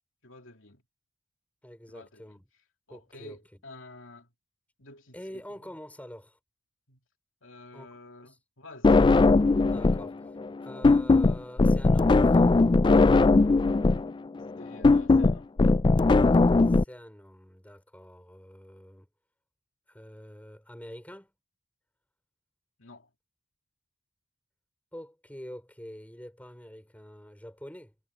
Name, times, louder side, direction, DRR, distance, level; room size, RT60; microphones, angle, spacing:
voice 1, 0.2-0.8 1.9-2.4 2.9-4.3 4.8-5.2 5.6-5.8 6.9-7.0 7.4-9.0 14.6-15.5 22.8-23.1, left 2 dB, 65° left, 3.3 m, -49 dB
voice 2, 1.6-2.5 2.9-3.6 5.1-6.4 7.7-8.4 9.6-10.4 10.6-12.5 16.6-19.1 19.9-21.3 24.9-27.9, equal, 5° left, 5.6 m, -46 dB
sound 1, 8.8-10.1 10.4-16.8, left 3 dB, 20° left, 0.3 m, -20 dB
head